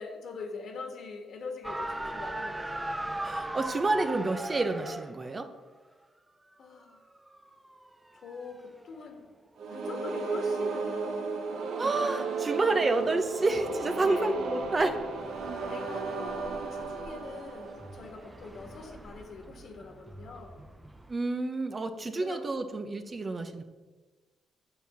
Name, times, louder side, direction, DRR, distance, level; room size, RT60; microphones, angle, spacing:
voice 1, 0.0-3.0 6.6-7.0 8.1-9.2 9.7-11.8 14.0-14.4 15.7-20.6 22.2-22.4, left 4 dB, 60° left, 5 dB, 1.9 m, -43 dB
sound 1, 1.6-5.3 6.9-9.2 12.8-21.1, right 1 dB, 10° right, 0.8 m, -41 dB
voice 2, 3.2-5.5 11.8-15.0 21.1-23.6, right 2 dB, 30° right, 7 dB, 1.0 m, -29 dB
sound 2, 9.6-18.5, right 4 dB, 80° right, 1.7 m, -34 dB
8.5 x 7.1 x 7.0 m, 1.3 s
cardioid pair, 90°, 0 cm